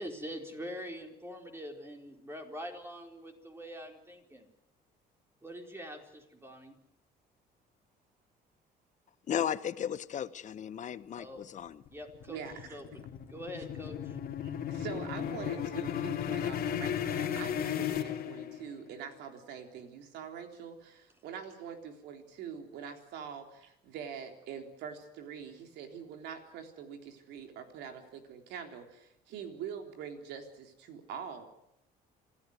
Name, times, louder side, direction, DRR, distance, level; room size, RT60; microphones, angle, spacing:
voice 1, 0.0-4.5 5.4-6.8 11.1-11.4 11.9-14.2, equal, 15° right, 4.3 m, -44 dB
voice 2, 9.3-11.8, left 9 dB, 45° left, 1.0 m, -35 dB
sound 1, 11.6-18.8, left 9 dB, 65° left, 2.6 m, -35 dB
voice 3, 12.3-12.8 14.4-31.4, right 7 dB, 85° right, 3.7 m, -44 dB
27.0 x 14.0 x 9.5 m
cardioid pair, 110°, 17 cm